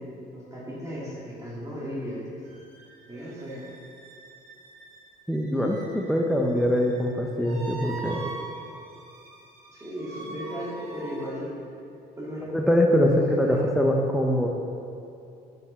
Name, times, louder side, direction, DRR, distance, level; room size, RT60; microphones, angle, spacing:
voice 1, 0.0-2.5 3.1-3.7 9.7-11.5 12.2-12.5 13.0-13.7, equal, 20° right, -7 dB, 2.1 m, -36 dB
sound 1, 2.4-11.3, right 3 dB, 70° right, 2.0 m, -43 dB
voice 2, 5.3-8.2 12.5-14.5, equal, ahead, 0 dB, 0.7 m, -23 dB
7.1 x 5.5 x 6.8 m, 2.7 s
cardioid pair, 110°, 17 cm